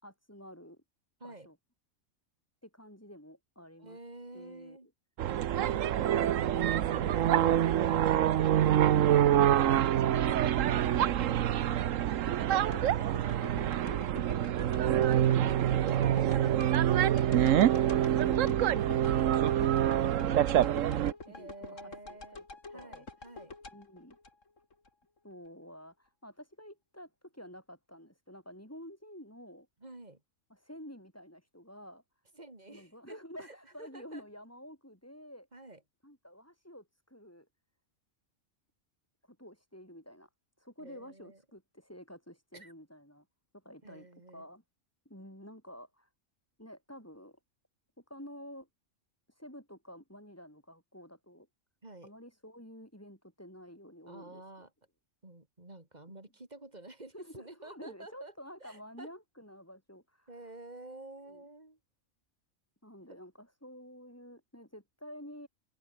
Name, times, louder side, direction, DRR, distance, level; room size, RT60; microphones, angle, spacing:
voice 1, 0.0-0.8 1.2-1.5 2.6-4.0 4.3-4.8 5.7-7.8 8.8-9.2 9.8-12.4 12.7-13.2 14.2-14.8 15.1-17.0 17.3-17.5 17.8-18.8 20.1-22.4 22.7-23.1 23.7-24.2 25.2-29.7 30.5-32.0 32.7-35.5 36.0-37.5 39.3-40.3 40.6-43.3 43.5-44.1 44.3-44.6 45.1-46.1 46.6-47.4 48.0-48.7 49.3-51.5 52.0-54.4 57.1-60.3 61.3-61.4 62.8-65.5, equal, 10° left, 7.0 m, -50 dB
voice 2, 3.8-4.9 7.9-8.3 13.2-14.4 16.2-16.6 16.9-17.1 17.7-18.0 19.0-19.4 21.3-22.4 22.7-23.6 29.8-30.2 32.3-34.2 35.5-35.8 40.8-41.4 42.5-42.7 43.8-44.5 51.8-52.1 54.0-54.7 55.2-58.3 58.6-59.1 60.3-61.8 63.1-63.2, right 2 dB, 35° right, 4.3 m, -50 dB
sound 1, 5.2-21.1, right 11 dB, 80° right, 1.2 m, -26 dB
sound 2, 12.7-24.9 25.3-25.4, left 3 dB, 75° left, 3.5 m, -47 dB
open air
omnidirectional pair, 1.3 m